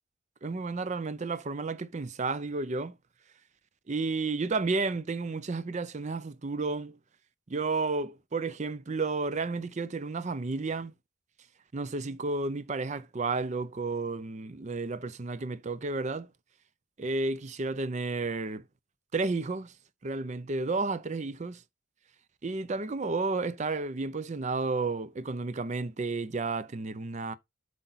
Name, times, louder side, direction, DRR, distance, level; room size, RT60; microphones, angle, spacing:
voice 1, 0.4-3.0 3.9-7.0 7.5-10.9 11.7-16.3 17.0-18.6 19.1-19.7 20.0-21.6 22.4-27.3, right 3 dB, 35° right, 0.5 m, -32 dB
7.8 x 5.0 x 4.0 m
head